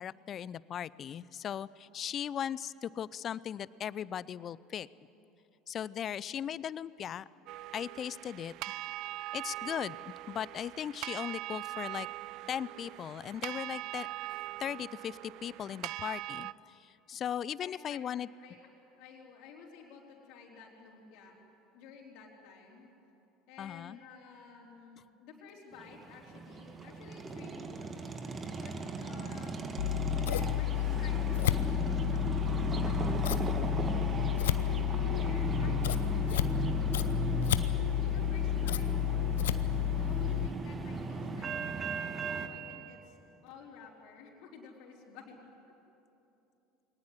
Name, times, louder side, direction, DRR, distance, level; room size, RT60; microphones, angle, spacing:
voice 1, 0.0-4.9 5.7-7.2 7.7-8.5 9.3-12.1 12.5-14.1 14.6-18.3 23.6-24.0, left 9 dB, 40° left, 20 dB, 0.5 m, -38 dB
sound 1, 7.5-16.5, right 16 dB, 55° right, 0.4 m, -41 dB
voice 2, 17.6-18.7 19.0-21.4 21.7-22.9 23.5-28.0 28.6-32.4 32.8-33.2 33.5-33.8 34.4-36.5 38.0-38.9 39.6-43.2 43.4-45.4, left 5 dB, 60° left, -3 dB, 4.1 m, -53 dB
sound 2, 25.8-42.5, right 4 dB, 30° right, 1.9 m, -37 dB
Scissors, 29.8-40.5, left 13 dB, 80° left, 0.7 m, -31 dB
22.5 x 19.0 x 9.9 m, 2.9 s
hypercardioid pair, 75°, 0 cm